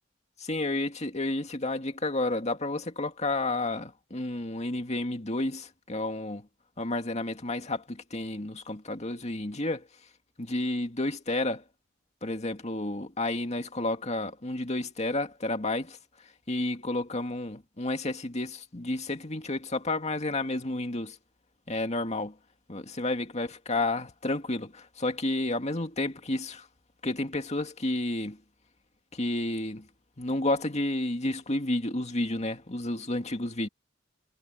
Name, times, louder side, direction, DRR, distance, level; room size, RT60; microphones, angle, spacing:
voice 1, 0.5-6.4 6.8-9.8 10.4-11.6 12.2-16.0 16.5-21.1 21.7-22.3 22.7-26.6 27.0-28.4 29.1-29.8 30.2-33.7, left 2 dB, 35° left, 2.1 m, -31 dB
head